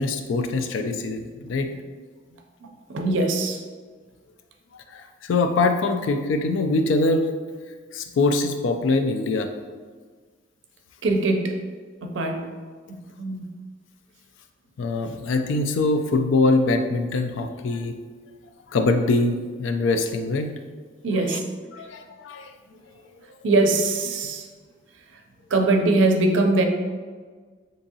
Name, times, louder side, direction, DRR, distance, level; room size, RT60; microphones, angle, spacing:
voice 1, 0.0-1.7 4.9-7.3 7.9-9.5 14.8-17.9 18.7-19.3 19.6-20.5 21.3-21.4 21.7-22.4, left 3 dB, 90° left, 7 dB, 0.3 m, -23 dB
voice 2, 2.9-3.6 11.0-11.6 12.0-12.4 12.9-13.4 21.0-21.4 23.4-24.4 25.5-26.6, right 2 dB, 85° right, 3 dB, 0.4 m, -22 dB
3.6 x 2.8 x 2.7 m, 1.5 s
head